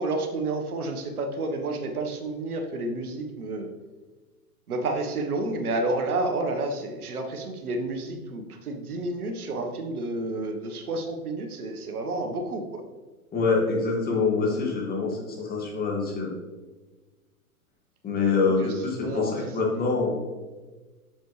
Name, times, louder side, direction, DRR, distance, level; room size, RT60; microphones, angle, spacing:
voice 1, 0.0-3.7 4.7-12.8 18.6-19.8, right 2 dB, 75° right, 4 dB, 1.4 m, -30 dB
voice 2, 13.3-16.3 18.0-20.2, left 4 dB, 20° left, -1 dB, 2.0 m, -25 dB
7.8 x 7.1 x 3.3 m, 1.3 s
hypercardioid pair, 115°, 44 cm